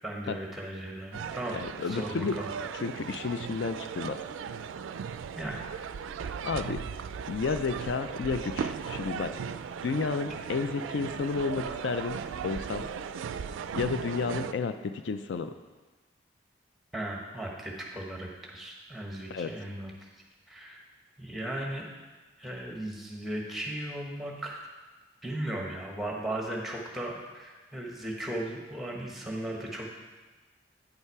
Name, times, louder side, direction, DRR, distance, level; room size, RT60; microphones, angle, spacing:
voice 1, 0.0-1.6 1.9-2.5 3.1-3.2 5.3-5.6 16.9-19.9 20.5-20.8 21.2-21.8 22.4-24.7 25.2-29.9, right 1 dB, ahead, -1 dB, 1.0 m, -36 dB
sound 1, 1.1-14.5, right 6 dB, 90° right, 0.3 m, -37 dB
voice 2, 1.5-2.4 2.7-4.2 6.4-6.8 7.3-9.3 9.8-12.9 13.7-15.5 19.3-19.5, left 4 dB, 70° left, 9 dB, 0.4 m, -31 dB
9.3 x 5.6 x 4.7 m, 1.3 s
head